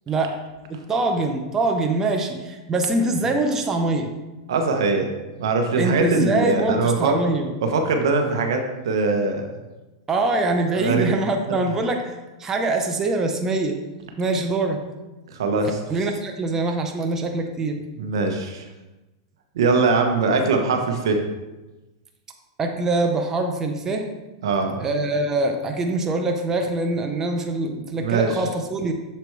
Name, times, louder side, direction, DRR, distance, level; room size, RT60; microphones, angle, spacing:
voice 1, 0.1-0.4 0.7-4.1 5.8-7.5 10.1-13.8 14.2-14.8 15.9-17.8 22.6-24.1 24.8-28.9, right 2 dB, 20° right, 3 dB, 0.7 m, -24 dB
voice 2, 4.5-5.1 5.4-7.2 7.6-9.5 10.7-11.1 11.5-11.6 15.3-15.8 18.0-18.6 19.5-21.2 24.4-24.8 28.0-28.3, right 4 dB, 75° right, 4 dB, 0.9 m, -21 dB
6.8 x 4.4 x 3.2 m, 1.1 s
hypercardioid pair, 120°, 2 cm